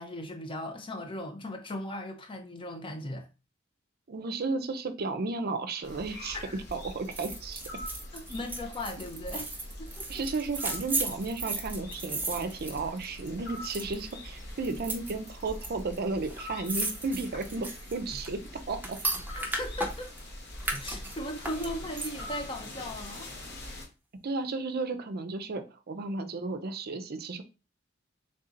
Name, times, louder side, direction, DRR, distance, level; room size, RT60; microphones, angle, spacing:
voice 1, 0.0-3.3 6.3-6.6 8.1-10.2 19.3-20.1 20.8-23.4, left 1 dB, 25° left, 0.7 m, -38 dB
voice 2, 4.1-6.4 6.7-7.6 10.1-19.0 24.2-27.4, right 3 dB, 50° right, 0.5 m, -33 dB
sound 1, 5.8-23.9, left 1 dB, 60° left, 1.3 m, -43 dB
sound 2, 7.1-13.3 13.6-14.1 14.6-15.7 15.9-16.0 16.2-20.2 20.6-22.4 22.8-22.9, right 2 dB, 10° right, 0.7 m, -35 dB
3.6 x 2.7 x 3.7 m
head